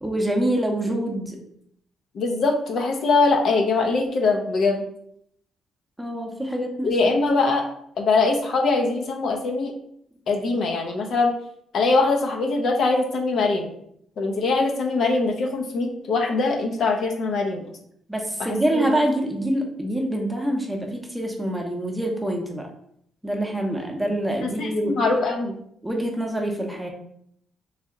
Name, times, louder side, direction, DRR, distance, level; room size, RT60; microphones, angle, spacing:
voice 1, 0.0-1.4 6.0-7.0 18.1-22.7 23.2-25.0 25.8-26.9, right 1 dB, 5° right, 2 dB, 0.7 m, -25 dB
voice 2, 2.1-4.8 6.8-7.6 8.0-9.7 10.3-11.3 11.7-13.7 14.2-17.6 18.4-19.0 24.4-25.5, left 3 dB, 65° left, 1 dB, 0.7 m, -22 dB
3.2 x 2.6 x 3.7 m, 0.70 s
cardioid pair, 90°, 0 cm